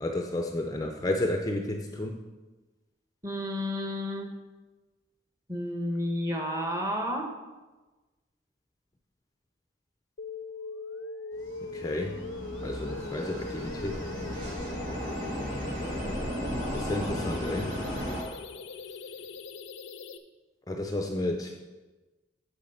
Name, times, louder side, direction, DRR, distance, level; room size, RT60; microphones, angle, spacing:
voice 1, 0.0-2.2 11.6-12.2 12.6-14.0 16.7-17.7 20.7-21.5, left 1 dB, 20° left, 3 dB, 0.5 m, -31 dB
voice 2, 3.2-4.4 5.5-7.4, equal, 15° right, 3 dB, 1.0 m, -31 dB
sound 1, 10.2-20.2, left 3 dB, 80° left, 0.6 m, -41 dB
sound 2, 11.4-18.2, equal, 65° right, 2.4 m, -35 dB
7.3 x 7.0 x 5.6 m, 1.2 s
head